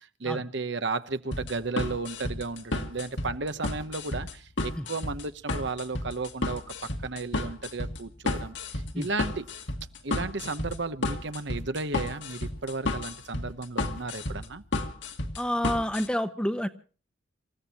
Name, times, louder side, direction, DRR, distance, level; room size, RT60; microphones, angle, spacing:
voice 1, 0.0-6.6 7.0-9.5 10.0-14.6, right 3 dB, 60° right, 11 dB, 1.0 m, -34 dB
sound 1, 1.3-16.1, left 2 dB, 65° left, 2.2 m, -32 dB
voice 2, 15.4-16.7, equal, 5° left, 9 dB, 1.0 m, -28 dB
28.0 x 15.5 x 3.0 m, 0.39 s
head